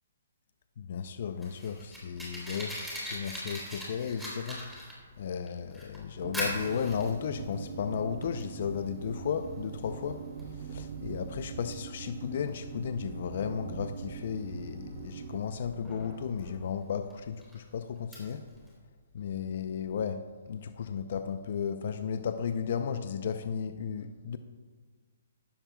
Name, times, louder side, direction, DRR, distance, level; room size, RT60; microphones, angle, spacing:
voice 1, 0.8-4.6 5.2-10.2 10.7-18.4 19.1-24.4, left 7 dB, 55° left, 9 dB, 0.6 m, -34 dB
Fire, 1.1-18.7, equal, ahead, 3.6 m, -43 dB
sound 1, 6.2-15.4, right 5 dB, 55° right, 0.9 m, -42 dB
14.5 x 13.0 x 2.3 m, 1.5 s
hypercardioid pair, 145°, 0 cm